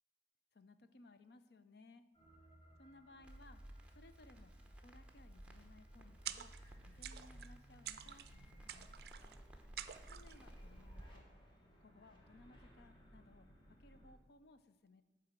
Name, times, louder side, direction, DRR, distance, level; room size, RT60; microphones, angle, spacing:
voice 1, 0.5-2.0 2.8-3.6 3.9-4.5 4.8-6.5 6.8-8.9 10.1-11.3 11.8-13.5 13.8-15.0, left 2 dB, 65° left, 11 dB, 0.6 m, -62 dB
sound 1, 2.1-14.1, equal, 25° left, 1.5 m, -65 dB
Crackle, 3.2-11.0, right 1 dB, 5° right, 0.8 m, -56 dB
sound 2, 6.3-6.7 7.0-7.5 7.9-8.3 8.7-9.4 9.8-10.4, right 10 dB, 55° right, 0.4 m, -48 dB
8.7 x 4.8 x 7.5 m, 1.2 s
head